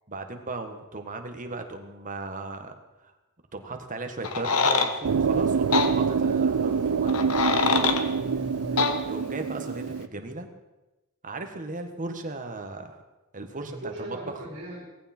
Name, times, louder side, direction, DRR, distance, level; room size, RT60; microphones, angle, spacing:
voice 1, 0.1-2.7 3.0-3.1 3.5-7.4 9.1-10.5 11.2-13.0 13.3-14.4, right 3 dB, 35° right, 6 dB, 1.6 m, -36 dB
sound 1, 4.2-4.9 5.7-5.9 7.1-8.0 8.8-8.9, left 4 dB, 75° left, 1.4 m, -23 dB
sound 2, 5.0-10.1, right 6 dB, 90° right, 0.5 m, -26 dB
voice 2, 8.2-9.1 13.7-14.9, right 1 dB, 55° right, -3 dB, 3.5 m, -38 dB
18.0 x 15.5 x 4.5 m, 1.1 s
head